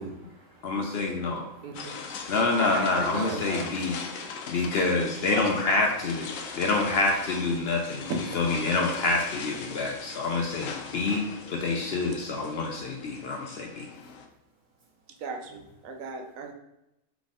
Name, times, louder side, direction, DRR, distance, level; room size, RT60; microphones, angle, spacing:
voice 1, 0.0-1.9 2.2-2.3 2.9-3.6 3.9-4.8 6.3-6.6, right 2 dB, 40° right, -2 dB, 1.0 m, -41 dB
voice 2, 0.6-1.5 2.3-4.0 4.5-8.1 8.3-13.8, left 3 dB, 60° left, 1 dB, 0.7 m, -27 dB
voice 3, 1.6-2.1 2.6-3.5 5.3-5.5 8.1-8.4 9.0-9.2 15.2-16.5, right 4 dB, 80° right, 4 dB, 1.0 m, -36 dB
sound 1, 1.7-14.3, left 5 dB, 75° left, 1.0 m, -40 dB
4.0 x 3.6 x 3.6 m, 0.87 s
omnidirectional pair, 1.4 m